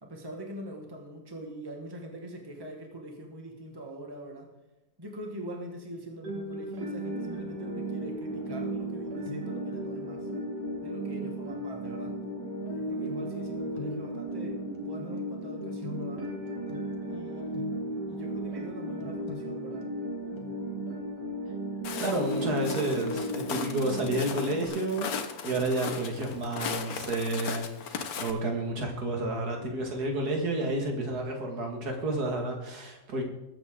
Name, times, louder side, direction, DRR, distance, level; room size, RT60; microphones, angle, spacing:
voice 1, 0.0-4.5 5.0-10.3 10.8-12.2 12.7-16.3 17.0-17.7 18.1-19.9, right 1 dB, 15° right, 1 dB, 1.6 m, -43 dB
sound 1, 6.2-24.7, right 1 dB, 85° right, 3.3 m, -35 dB
sound 2, 8.5-9.0 9.2-9.7 11.1-11.3 13.0-17.2 17.5-18.1 19.0-20.8 21.9-22.5 22.9-23.0, left 4 dB, 15° left, 1.6 m, -45 dB
Walk footsteps, 21.8-28.3, left 6 dB, 60° left, 1.4 m, -37 dB
voice 2, 22.0-25.1 25.4-33.2, right 2 dB, 60° right, 2 dB, 2.5 m, -30 dB
20.5 x 7.7 x 3.8 m, 0.96 s
omnidirectional pair, 1.8 m